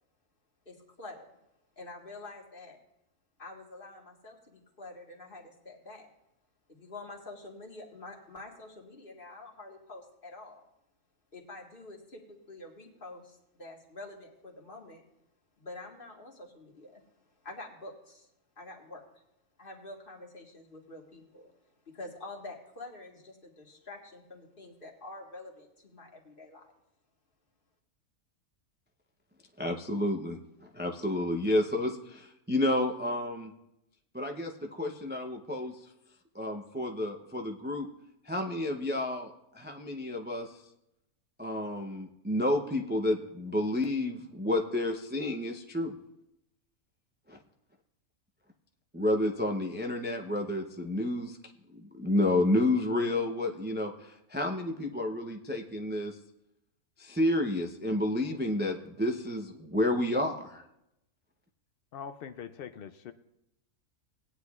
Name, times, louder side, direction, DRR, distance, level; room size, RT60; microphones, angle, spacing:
voice 1, 0.7-1.3 1.8-2.8 3.4-6.1 6.7-10.6 11.3-15.0 15.6-17.0 17.4-18.3 18.6-19.0 19.6-21.5 21.9-26.7, left 2 dB, 40° left, 0 dB, 1.8 m, -47 dB
voice 2, 29.6-33.5 34.1-35.8 36.3-37.9 38.2-40.6 41.4-45.9 47.3-47.4 48.9-51.4 51.7-56.2 57.0-60.6, left 1 dB, 15° right, 3 dB, 0.3 m, -30 dB
voice 3, 61.9-63.1, left 7 dB, 80° left, 10 dB, 0.5 m, -42 dB
18.5 x 9.8 x 2.4 m, 0.85 s
omnidirectional pair, 1.5 m